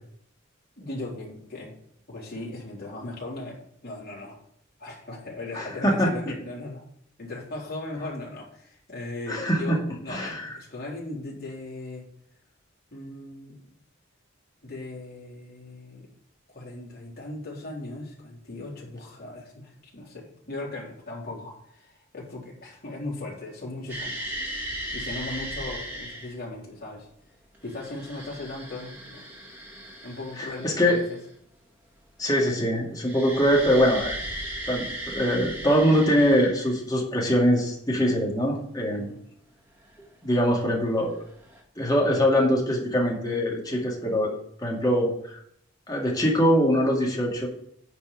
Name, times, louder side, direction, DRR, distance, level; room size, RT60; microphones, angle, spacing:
voice 1, 0.8-1.8 2.1-4.4 4.8-6.8 7.2-12.1 12.9-13.6 14.6-16.1 16.5-24.4 24.9-27.1 27.6-29.2 30.0-31.0 38.9-39.2, left 2 dB, 50° left, -4 dB, 3.9 m, -38 dB
voice 2, 5.5-6.1 9.3-9.8 10.1-10.5 30.4-31.0 32.2-34.2 34.7-39.1 40.2-41.2 41.8-44.3 44.6-45.4 45.9-47.5, equal, 20° left, -2 dB, 2.2 m, -23 dB
sound 1, 23.9-26.4 27.5-31.4 33.0-37.0 40.0-40.1 41.2-41.6, right 1 dB, 10° right, 1.9 m, -37 dB
9.8 x 4.5 x 7.3 m, 0.68 s
head